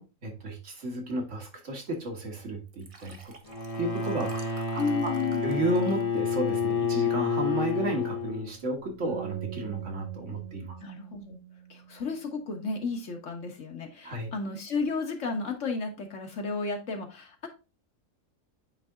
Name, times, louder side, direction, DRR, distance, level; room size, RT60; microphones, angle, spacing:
voice 1, 0.0-3.3 3.8-5.1 5.4-10.8 14.0-14.3, right 1 dB, 60° right, 2 dB, 2.0 m, -32 dB
Liquid, 2.7-7.3 7.8-8.1 8.3-8.4, right 3 dB, 30° right, 0.8 m, -48 dB
Bowed string instrument, 3.5-8.7, left 5 dB, 30° left, 1.1 m, -29 dB
voice 2, 4.8-5.4 10.8-11.4 11.7-17.5, left 4 dB, 65° left, 4 dB, 1.6 m, -33 dB
sound 1, 9.1-12.5, right 10 dB, 85° right, 1.1 m, -43 dB
8.8 x 3.4 x 3.7 m, 0.29 s
omnidirectional pair, 1.4 m